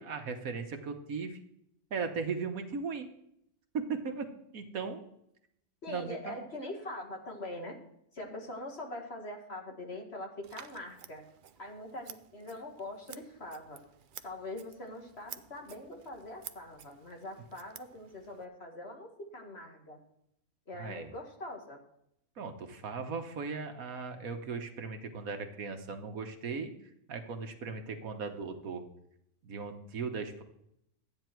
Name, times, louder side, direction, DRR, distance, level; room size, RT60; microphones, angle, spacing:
voice 1, 0.0-1.4 1.9-3.1 3.7-4.3 4.5-5.0 5.9-6.4 20.7-21.1 22.4-26.7 27.1-28.8 29.4-30.4, right 5 dB, 65° right, 6 dB, 1.5 m, -37 dB
voice 2, 5.8-7.8 8.1-11.2 11.6-13.8 14.2-20.0 20.7-21.8, left 1 dB, 45° left, 1 dB, 2.1 m, -43 dB
Scissors, 10.4-18.5, right 8 dB, 85° right, 0.4 m, -52 dB
13.0 x 9.3 x 4.5 m, 0.76 s
omnidirectional pair, 1.6 m